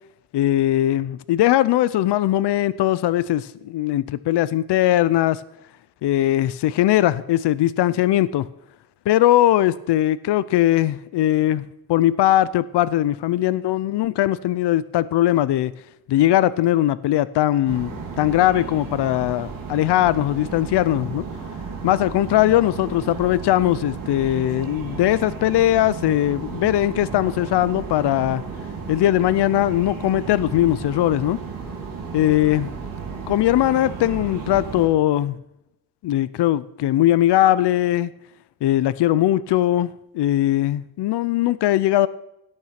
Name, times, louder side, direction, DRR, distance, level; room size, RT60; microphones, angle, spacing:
voice 1, 0.3-5.4 6.0-8.5 9.1-15.7 16.1-21.2 21.8-28.4 28.9-31.4 32.1-32.7 33.3-35.4 36.0-38.1 38.6-42.1, left 13 dB, 90° left, 0.6 m, -20 dB
sound 1, 17.6-34.9, right 5 dB, 55° right, 5.4 m, -34 dB
17.5 x 8.9 x 5.8 m
wide cardioid pair, 175°, 40 cm